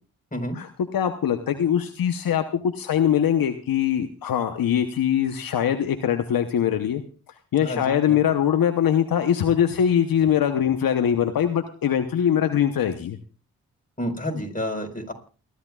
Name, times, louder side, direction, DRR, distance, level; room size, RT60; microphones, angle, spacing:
voice 1, 0.9-7.0 7.5-13.2, left 9 dB, 70° left, 7 dB, 1.0 m, -22 dB
voice 2, 7.6-8.2 14.0-15.1, left 1 dB, 25° left, 2 dB, 4.8 m, -30 dB
29.0 x 11.5 x 2.4 m, 0.38 s
supercardioid pair, 45°, 36 cm